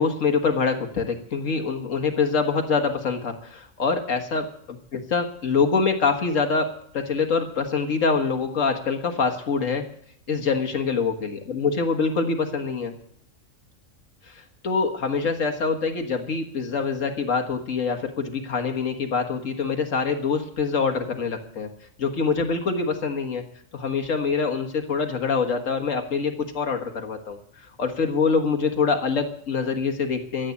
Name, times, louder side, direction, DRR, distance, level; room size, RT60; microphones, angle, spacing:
voice 1, 0.0-4.5 4.9-6.7 6.9-9.9 10.3-12.9 14.3-14.4 14.6-21.7 22.0-23.4 23.7-27.4 27.8-30.5, left 5 dB, 75° left, 4 dB, 1.9 m, -25 dB
14.0 x 8.3 x 8.4 m, 0.66 s
omnidirectional pair, 1.4 m